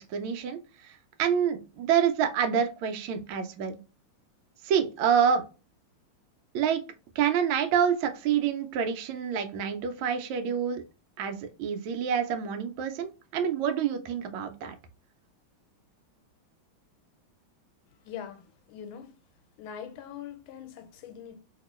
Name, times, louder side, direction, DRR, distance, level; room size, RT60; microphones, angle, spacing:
voice 1, 0.1-0.9 1.2-3.8 4.6-5.4 6.5-6.8 7.2-10.8 11.2-14.7, right 8 dB, 80° right, 1.4 m, -27 dB
voice 2, 18.0-19.2 19.6-21.4, left 8 dB, 85° left, 1.4 m, -42 dB
2.9 x 2.9 x 3.0 m
omnidirectional pair, 2.3 m